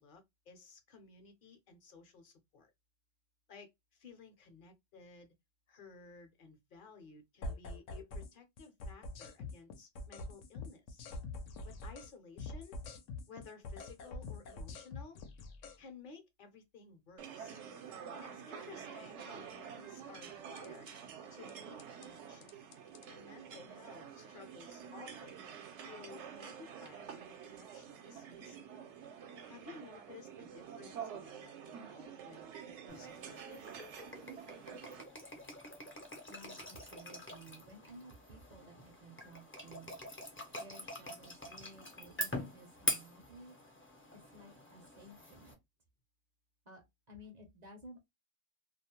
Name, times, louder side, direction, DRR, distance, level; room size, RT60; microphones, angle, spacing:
voice 1, 0.0-2.7 3.5-5.3 5.7-11.1 11.6-12.8 13.3-15.2 15.8-17.6 18.1-20.9 21.3-22.6 23.1-25.4 25.8-28.7 29.5-33.6, left 4 dB, 50° left, 0.7 m, -56 dB
sound 1, 7.4-8.3 8.6-12.1 12.4-15.8 20.6-20.9 21.5-22.1 22.4-23.1, left 2 dB, 80° left, 0.9 m, -45 dB
sound 2, 17.2-35.0, right 7 dB, 70° right, 0.9 m, -48 dB
sound 3, 32.9-45.5, left 1 dB, 20° left, 0.3 m, -44 dB
voice 2, 36.3-40.0 40.5-43.6 44.1-45.6 46.7-48.0, right 1 dB, 45° right, 0.6 m, -55 dB
2.4 x 2.0 x 2.8 m
omnidirectional pair, 1.3 m